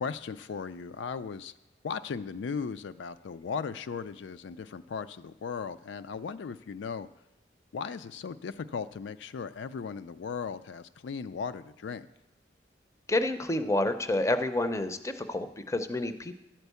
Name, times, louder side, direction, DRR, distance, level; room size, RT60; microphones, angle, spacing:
voice 1, 0.0-1.5 1.8-7.1 7.7-12.1, left 5 dB, 85° left, 11 dB, 0.4 m, -37 dB
voice 2, 13.1-16.3, left 1 dB, 15° left, 9 dB, 0.5 m, -29 dB
11.5 x 4.5 x 8.2 m, 0.94 s
head